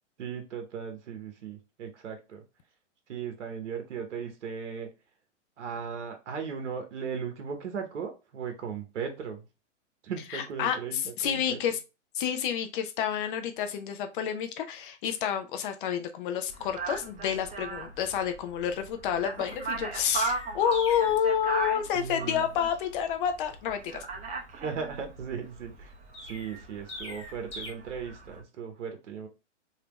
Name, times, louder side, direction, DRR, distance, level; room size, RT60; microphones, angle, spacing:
voice 1, 0.2-2.4 3.1-4.9 5.6-9.4 10.0-11.6 21.9-22.5 24.5-25.9 26.2-29.3, right 6 dB, 70° right, 0.9 m, -37 dB
voice 2, 10.3-11.8 12.1-24.0, left 8 dB, 45° left, 0.6 m, -29 dB
sound 1, 16.5-28.4, right 3 dB, 20° right, 0.8 m, -38 dB
Chirp tweet, 19.4-21.2 26.1-27.7, left 2 dB, 15° left, 1.0 m, -42 dB
3.3 x 2.8 x 2.9 m
hypercardioid pair, 115°, 36 cm